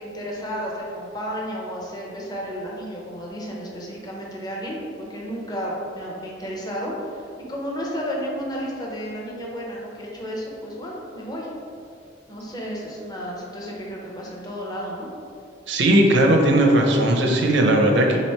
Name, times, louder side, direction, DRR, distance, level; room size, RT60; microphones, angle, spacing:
voice 1, 0.0-4.8 5.1-11.5 12.3-15.1, equal, 20° left, -3 dB, 0.7 m, -32 dB
voice 2, 15.7-18.2, right 1 dB, 70° right, 2 dB, 0.6 m, -17 dB
3.9 x 3.1 x 4.2 m, 2.4 s
head